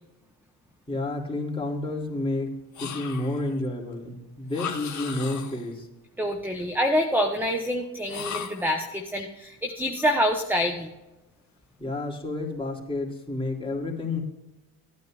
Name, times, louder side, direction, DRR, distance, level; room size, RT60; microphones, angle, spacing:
voice 1, 0.9-5.9 11.8-14.2, left 2 dB, 10° left, -2 dB, 2.9 m, -30 dB
sound 1, 2.7-3.5 4.5-5.7 8.1-8.8, left 7 dB, 40° left, 1.8 m, -36 dB
voice 2, 6.2-10.9, equal, 5° right, 4 dB, 1.0 m, -26 dB
16.5 x 9.3 x 2.5 m, 1.0 s
supercardioid pair, 80°, 43 cm